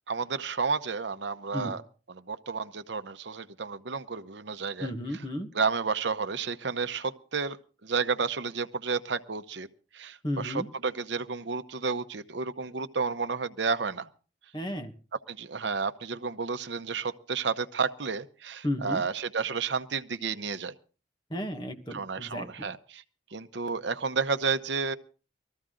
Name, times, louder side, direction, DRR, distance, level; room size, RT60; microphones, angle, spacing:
voice 1, 0.1-1.8 2.1-4.9 5.5-7.6 7.8-9.7 9.9-14.1 15.3-20.7 21.9-23.0 23.3-25.0, right 5 dB, 70° right, 10 dB, 0.8 m, -31 dB
voice 2, 4.8-5.5 10.2-10.7 14.5-14.9 18.6-19.0 21.3-22.7, left 1 dB, 25° left, 6 dB, 1.4 m, -33 dB
19.5 x 14.0 x 3.8 m, 0.36 s
head